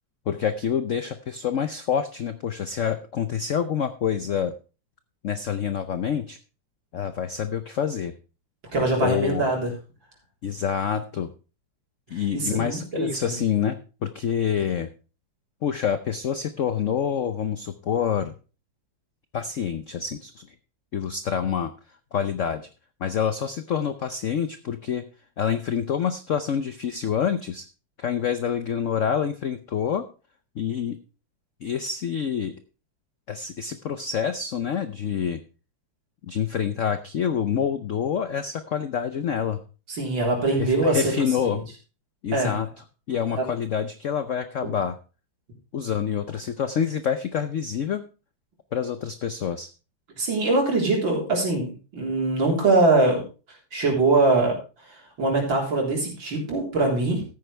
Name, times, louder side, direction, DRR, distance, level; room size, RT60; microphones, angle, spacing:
voice 1, 0.3-4.5 5.2-6.4 6.9-8.1 9.0-9.4 10.4-11.3 12.1-14.9 15.6-18.3 19.3-20.5 20.9-21.7 22.1-22.7 23.0-25.0 25.4-27.7 28.0-30.1 30.6-31.0 31.6-32.6 33.3-35.4 36.2-39.6 40.6-41.6 42.2-42.7 43.1-45.0 45.7-48.0 48.7-49.7, left 8 dB, 70° left, 10 dB, 0.7 m, -27 dB
voice 2, 8.7-9.7 12.1-13.3 39.9-41.6 42.3-42.5 43.4-43.5 50.2-53.2 53.7-54.6 54.8-57.2, right 2 dB, 70° right, -1 dB, 4.4 m, -23 dB
14.0 x 9.5 x 3.3 m, 0.33 s
omnidirectional pair, 2.2 m